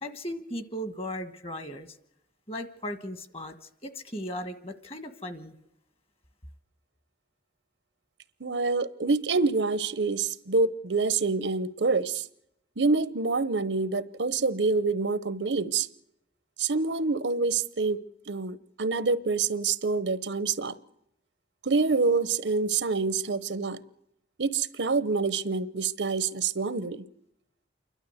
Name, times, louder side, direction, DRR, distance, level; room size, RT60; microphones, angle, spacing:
voice 1, 0.0-1.9 2.5-3.6 3.8-5.5, equal, 35° left, 1.5 m, -37 dB
voice 2, 8.4-12.2 12.8-15.9 16.6-18.0 18.3-20.8 21.6-23.8 24.4-27.0, right 4 dB, 90° right, 0.9 m, -26 dB
28.5 x 12.0 x 8.0 m
head